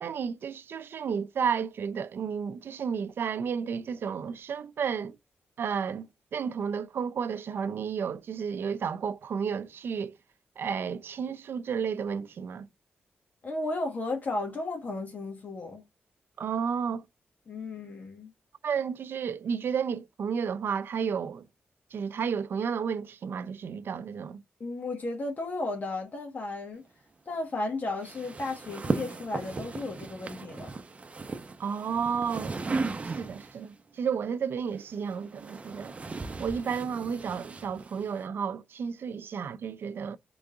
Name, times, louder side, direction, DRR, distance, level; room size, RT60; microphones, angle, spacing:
voice 1, 0.0-5.2 5.6-6.1 6.3-10.2 10.6-12.7 16.4-17.0 18.6-21.4 21.9-24.4 31.6-32.6 33.2-35.9 36.4-40.2, right 6 dB, 70° right, 0.5 m, -32 dB
voice 2, 13.4-15.8 17.5-18.3 24.6-26.8 27.2-30.7, left 2 dB, 50° left, 1.6 m, -34 dB
sound 1, 28.0-33.6 34.7-38.2, right 3 dB, 35° right, 0.8 m, -36 dB
3.9 x 3.5 x 3.7 m
cardioid pair, 100°, 4 cm